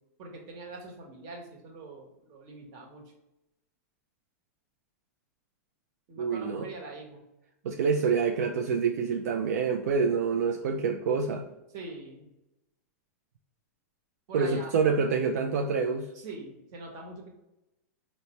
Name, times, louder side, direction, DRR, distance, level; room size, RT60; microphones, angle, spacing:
voice 1, 0.2-3.1 6.1-7.2 11.7-12.3 14.3-14.7 16.1-17.3, right 3 dB, 45° right, 1 dB, 1.0 m, -43 dB
voice 2, 6.2-6.7 7.6-11.5 14.3-16.1, right 5 dB, 75° right, 2 dB, 0.4 m, -27 dB
4.0 x 2.2 x 2.9 m, 0.93 s
hypercardioid pair, 130°, 9 cm